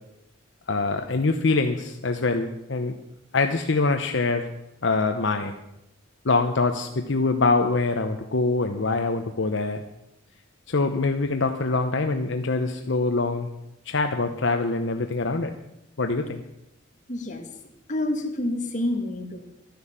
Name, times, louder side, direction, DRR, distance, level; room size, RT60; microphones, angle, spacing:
voice 1, 0.7-3.0 3.3-4.5 4.8-5.5 6.2-9.8 10.7-13.5 13.9-15.5 16.0-16.4, left 3 dB, 65° left, 5 dB, 0.9 m, -24 dB
voice 2, 17.1-17.4 17.9-19.4, left 1 dB, 40° left, 3 dB, 2.0 m, -28 dB
13.0 x 10.5 x 7.3 m, 0.87 s
head